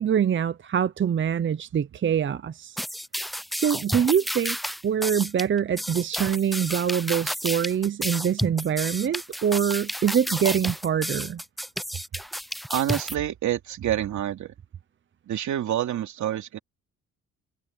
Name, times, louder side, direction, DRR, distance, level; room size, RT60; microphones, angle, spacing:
voice 1, 0.0-2.8 3.6-4.6 4.8-11.4, right 8 dB, 40° right, 0.8 m, -24 dB
sound 1, 2.8-13.1, equal, ahead, 0.5 m, -31 dB
voice 2, 12.7-14.5 15.3-16.6, right 11 dB, 70° right, 2.9 m, -27 dB
cardioid pair, 90°, 30 cm